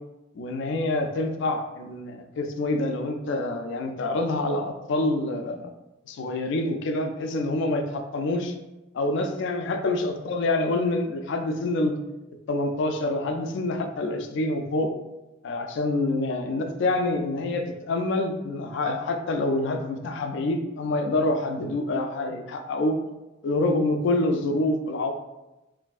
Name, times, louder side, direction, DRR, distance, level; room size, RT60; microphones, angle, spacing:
voice 1, 0.4-5.7 6.1-8.5 8.9-11.9 12.5-14.9 15.4-23.0 23.4-25.1, left 2 dB, 60° left, 6 dB, 0.3 m, -26 dB
3.2 x 2.5 x 2.4 m, 1.0 s
head